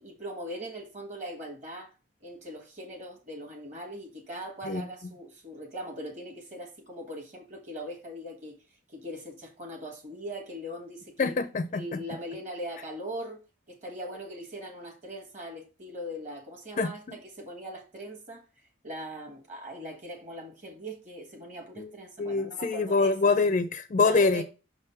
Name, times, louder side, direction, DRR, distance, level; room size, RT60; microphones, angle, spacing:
voice 1, 0.0-1.9 2.2-8.6 8.9-11.3 11.7-13.4 13.7-18.4 18.8-23.3 24.0-24.4, equal, 40° right, 1.4 m, -40 dB
voice 2, 11.2-12.0 16.8-17.2 21.8-21.9 22.2-24.4, left 4 dB, 40° left, 0.4 m, -25 dB
6.0 x 3.5 x 5.6 m
head